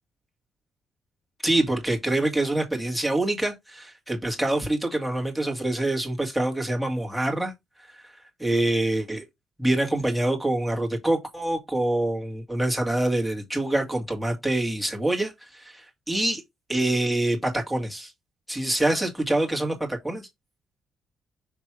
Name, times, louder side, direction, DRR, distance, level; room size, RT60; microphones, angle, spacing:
voice 1, 1.4-7.5 7.9-8.1 8.4-9.2 9.6-16.4 16.7-18.1 18.5-20.3, right 1 dB, ahead, 2.0 m, -25 dB
6.1 x 3.3 x 4.7 m
cardioid pair, 90°, 0 cm